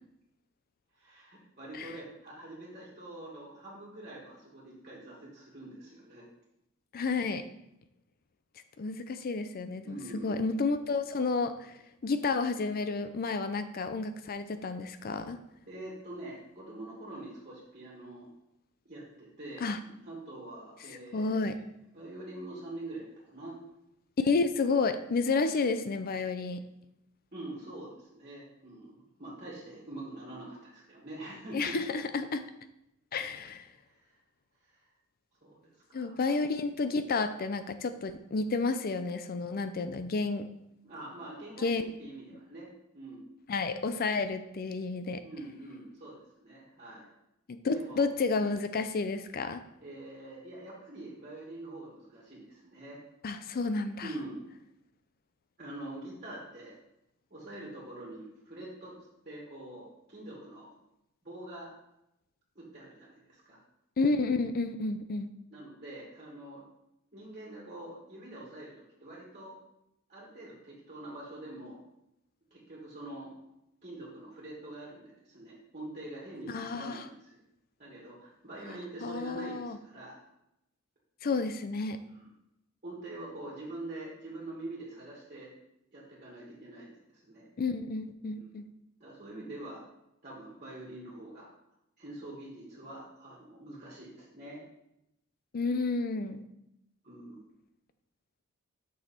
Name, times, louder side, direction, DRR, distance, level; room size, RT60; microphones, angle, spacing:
voice 1, 1.0-6.2 9.8-10.5 15.7-18.3 18.9-21.6 21.9-23.6 25.3-25.5 27.3-31.8 33.9-34.1 34.7-34.8 35.4-36.4 40.8-43.3 45.2-47.1 47.6-48.0 49.8-53.0 54.0-54.4 55.6-56.8 57.3-59.0 59.2-60.7 61.2-61.7 62.6-63.6 65.5-66.6 67.1-68.7 69.0-69.6 70.1-71.8 72.5-73.3 73.8-77.4 77.8-80.2 82.1-82.3 82.8-85.5 85.9-87.4 88.4-88.5 89.0-89.8 90.2-91.5 92.0-94.6 97.0-97.4, right 2 dB, 35° right, -5 dB, 2.2 m, -45 dB
voice 2, 6.9-7.4 8.8-11.7 12.0-15.4 19.6-19.8 21.1-21.6 24.2-26.6 31.5-32.4 33.1-33.7 35.9-40.5 41.6-41.8 43.5-45.2 47.5-49.6 53.2-54.1 64.0-65.3 76.5-77.1 79.0-79.8 81.2-82.0 87.6-88.7 95.5-96.4, left 4 dB, 45° left, 10 dB, 0.5 m, -31 dB
6.7 x 6.3 x 4.4 m, 0.83 s
head